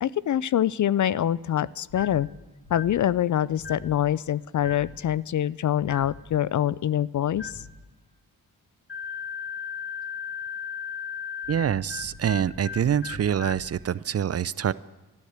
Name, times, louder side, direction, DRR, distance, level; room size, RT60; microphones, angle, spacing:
voice 1, 0.0-2.3 2.7-7.5, left 11 dB, 50° left, 20 dB, 0.4 m, -25 dB
sound 1, 1.9-2.3 2.6-3.0 3.6-3.9 4.6-5.0 5.8-6.2 7.3-7.7 8.9-13.7, left 6 dB, 30° left, 2.4 m, -37 dB
voice 2, 11.5-14.7, right 9 dB, 40° right, 19 dB, 0.4 m, -25 dB
11.5 x 11.5 x 8.1 m, 1.2 s
cardioid pair, 60°, 38 cm